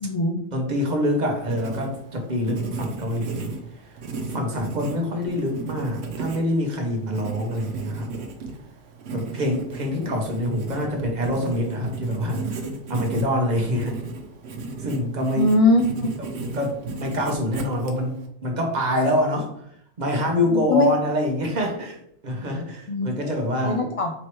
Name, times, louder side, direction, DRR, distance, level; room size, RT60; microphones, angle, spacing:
voice 1, 0.0-0.4 10.0-10.1 15.4-16.1 20.5-20.9 22.9-23.3 23.6-24.1, left 2 dB, 60° left, 3 dB, 0.3 m, -21 dB
voice 2, 0.5-3.5 4.3-8.1 9.1-12.6 12.9-14.0 14.8-15.5 16.5-19.5 20.0-23.8, left 1 dB, 45° right, 2 dB, 0.8 m, -25 dB
Writing, 1.1-18.3, right 3 dB, 75° right, 0.9 m, -35 dB
4.5 x 3.0 x 3.0 m, 0.70 s
omnidirectional pair, 1.1 m